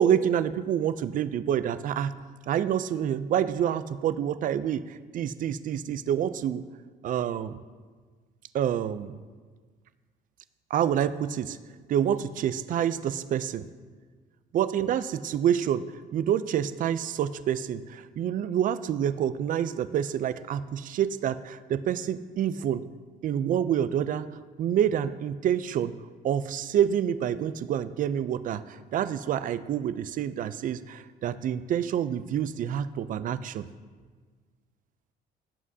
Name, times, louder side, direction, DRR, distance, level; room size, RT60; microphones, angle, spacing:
voice 1, 0.0-2.1 2.5-6.6 7.0-7.6 8.5-9.2 10.7-11.6 11.9-13.7 14.5-22.9 23.2-24.3 24.6-26.0 26.2-33.7, right 9 dB, 50° right, 14 dB, 0.5 m, -27 dB
17.0 x 7.4 x 2.8 m, 1.5 s
cardioid pair, 110°, 17 cm